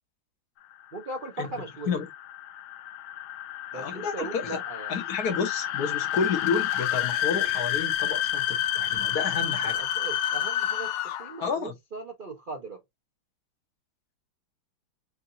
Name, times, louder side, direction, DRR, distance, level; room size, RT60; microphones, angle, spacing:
sound 1, 0.8-11.5, left 11 dB, 85° left, 1.4 m, -29 dB
voice 1, 0.9-2.0 3.7-5.0 9.6-12.8, right 3 dB, 85° right, 0.4 m, -38 dB
voice 2, 3.7-4.4 4.9-9.8 11.4-11.7, left 5 dB, 55° left, 1.3 m, -30 dB
4.7 x 2.5 x 2.7 m
omnidirectional pair, 2.2 m